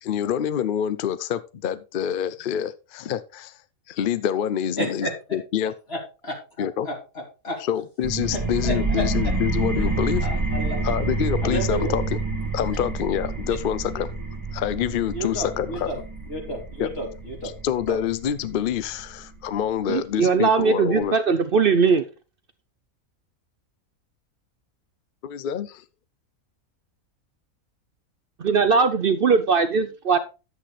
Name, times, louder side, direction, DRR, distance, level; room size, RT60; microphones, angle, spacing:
voice 1, 0.0-3.6 3.9-5.7 6.6-6.9 7.6-10.3 10.8-12.0 12.5-14.1 14.5-15.9 16.8-16.9 17.6-21.2 25.2-25.8, left 9 dB, 65° left, 0.5 m, -26 dB
voice 2, 4.8-5.1 5.9-7.6 8.3-9.3 9.8-9.9 10.2-10.8 11.5-11.9 15.1-16.0 16.3-17.5 17.9-18.0, equal, 45° left, 3.1 m, -31 dB
sound 1, 8.0-19.4, right 3 dB, 15° right, 1.6 m, -28 dB
voice 3, 19.9-22.0 28.4-30.2, right 5 dB, 55° right, 0.7 m, -20 dB
10.0 x 8.2 x 3.3 m
omnidirectional pair, 1.5 m